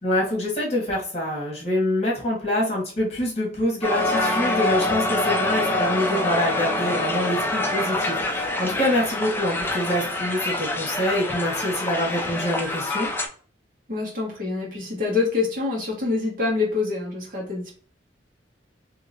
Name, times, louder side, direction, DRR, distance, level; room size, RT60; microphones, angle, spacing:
voice 1, 0.0-13.1, left 1 dB, 35° left, -3 dB, 1.4 m, -25 dB
Crowd, 3.8-13.3, left 2 dB, 10° left, 0.4 m, -25 dB
voice 2, 13.9-17.8, left 4 dB, 50° right, -3 dB, 1.4 m, -26 dB
2.9 x 2.8 x 2.6 m, 0.43 s
head